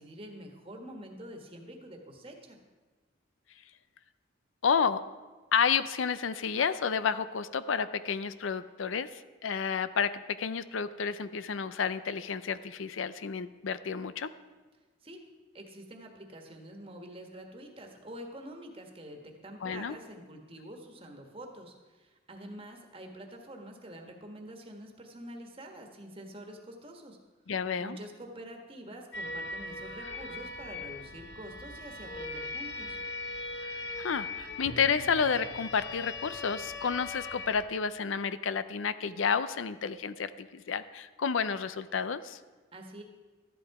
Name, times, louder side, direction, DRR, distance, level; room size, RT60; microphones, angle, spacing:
voice 1, 0.0-2.6 15.0-15.2 15.5-27.2 27.8-33.0 42.7-43.0, right 1 dB, 30° right, 3 dB, 1.5 m, -46 dB
voice 2, 4.6-5.0 5.5-14.3 19.6-20.0 27.5-28.0 34.0-42.4, left 6 dB, 85° left, 14 dB, 0.5 m, -30 dB
sound 1, 29.1-37.7, left 3 dB, 60° left, 0.9 m, -40 dB
13.5 x 11.0 x 4.8 m, 1.3 s
head